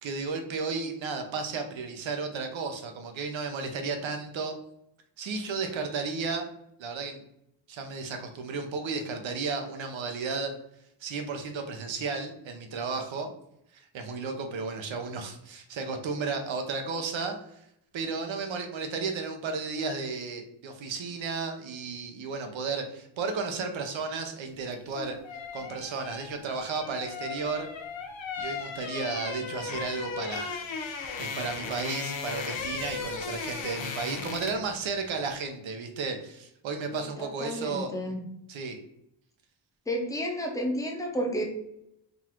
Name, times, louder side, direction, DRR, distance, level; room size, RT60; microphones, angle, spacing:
voice 1, 0.0-4.6 5.2-6.5 6.8-7.2 7.7-10.6 11.0-13.3 13.7-17.4 17.9-25.2 25.5-27.7 28.4-37.9 38.5-38.8, right 4 dB, 85° right, 5 dB, 0.8 m, -33 dB
sound 1, 24.7-34.7 35.0-35.2, left 5 dB, 80° left, 0.7 m, -36 dB
voice 2, 36.9-38.2 39.9-41.4, equal, 10° left, 1 dB, 0.6 m, -31 dB
3.9 x 2.5 x 4.3 m, 0.76 s
wide cardioid pair, 170°, 45 cm